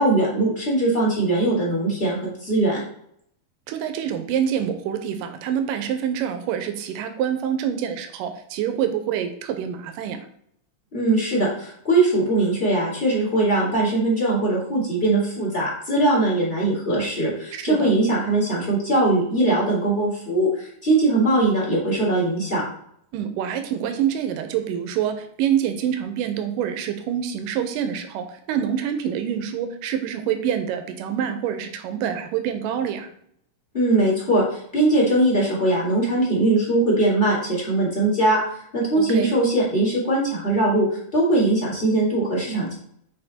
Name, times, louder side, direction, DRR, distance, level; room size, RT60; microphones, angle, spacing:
voice 1, 0.0-2.8 10.9-22.6 33.7-38.4 38.7-42.7, right 2 dB, 15° left, -6 dB, 2.4 m, -21 dB
voice 2, 3.7-10.3 17.5-17.9 23.1-33.1 38.9-39.3, right 9 dB, 85° right, 7 dB, 2.3 m, -26 dB
6.6 x 4.6 x 4.3 m, 0.68 s
omnidirectional pair, 3.8 m